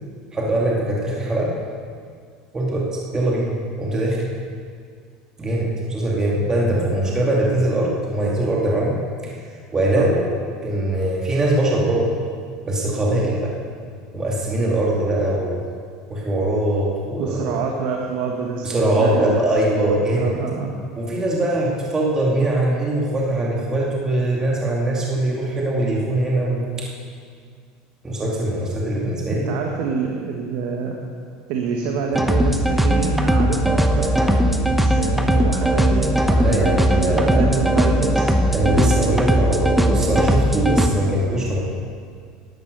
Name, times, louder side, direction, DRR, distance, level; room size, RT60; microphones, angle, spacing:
voice 1, 0.3-1.5 2.5-2.9 3.1-4.3 5.4-9.0 9.7-10.3 10.6-12.1 12.7-13.5 14.1-15.6 16.1-17.6 18.6-20.3 21.0-26.7 28.0-29.4 36.3-37.6 38.5-41.6, right 1 dB, 20° right, -3 dB, 2.6 m, -21 dB
voice 2, 17.2-19.5 20.1-20.7 29.3-31.0 31.5-38.3, right 5 dB, 70° right, 2 dB, 1.4 m, -27 dB
sound 1, 32.1-40.9, right 1 dB, 5° right, 1.1 m, -18 dB
12.5 x 10.5 x 6.7 m, 2.1 s
supercardioid pair, 110°, 3 cm